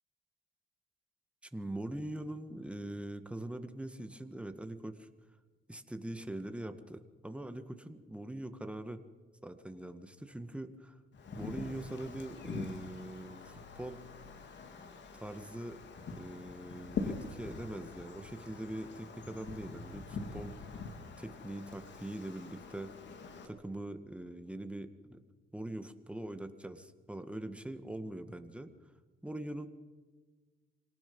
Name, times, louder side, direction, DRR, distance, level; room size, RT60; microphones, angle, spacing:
voice 1, 1.5-5.1 5.7-9.0 9.4-11.0 11.3-14.0 15.1-15.8 16.2-20.8 21.2-22.9 23.4-25.2 25.5-28.7 29.2-29.7, right 1 dB, 5° right, 8 dB, 1.8 m, -42 dB
Wind, 11.1-23.5, left 4 dB, 65° left, 3.0 m, -44 dB
26.5 x 18.5 x 5.5 m, 1.4 s
cardioid pair, 90°, 20 cm